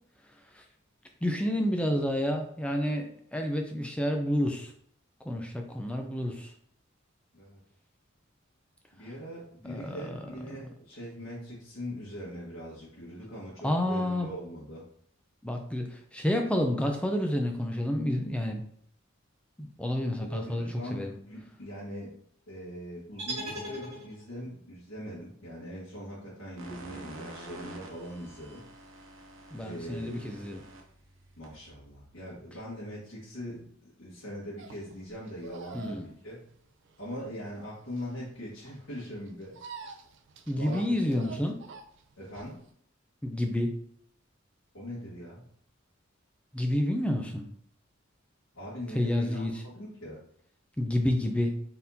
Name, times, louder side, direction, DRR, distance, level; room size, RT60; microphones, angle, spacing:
voice 1, 1.2-4.7 5.3-6.5 9.6-10.1 13.6-14.3 15.4-18.6 19.8-21.1 29.5-30.6 35.7-36.0 40.5-41.6 43.2-43.8 46.5-47.5 48.9-49.5 50.8-51.6, left 1 dB, 5° left, 3 dB, 0.4 m, -29 dB
voice 2, 8.9-14.8 20.2-22.1 22.5-28.7 29.6-30.1 31.4-36.4 37.0-39.6 40.5-41.4 42.2-42.6 44.7-45.5 48.5-50.2, equal, 75° left, -9 dB, 1.5 m, -41 dB
sound 1, 23.2-24.5, right 1 dB, 35° right, 1.4 m, -38 dB
sound 2, 26.6-32.6, right 1 dB, 80° right, 0.9 m, -48 dB
sound 3, 34.6-42.7, right 5 dB, 60° right, 0.4 m, -48 dB
4.3 x 3.6 x 2.7 m, 0.63 s
head